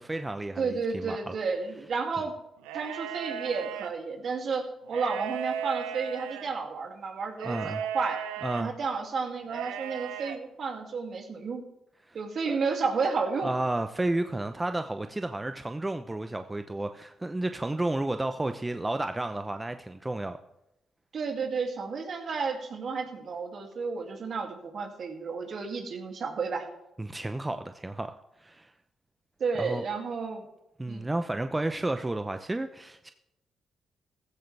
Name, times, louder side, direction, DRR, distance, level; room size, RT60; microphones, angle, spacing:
voice 1, 0.0-1.3 7.4-7.8 8.4-8.7 12.1-12.2 12.5-12.6 13.4-20.4 27.0-28.1 28.4-28.7 29.6-29.8 30.8-33.1, right 2 dB, 20° right, 8 dB, 0.8 m, -32 dB
voice 2, 0.6-2.3 2.7-8.3 8.6-11.6 12.1-13.5 21.1-26.7 29.4-30.5 30.9-31.1, right 4 dB, 60° right, 3 dB, 2.6 m, -32 dB
sound 1, 2.6-3.9 4.8-6.5 7.4-8.6 9.5-10.4, right 9 dB, 90° right, 0.7 m, -36 dB
15.0 x 14.0 x 3.4 m, 0.88 s
supercardioid pair, 50°, 0 cm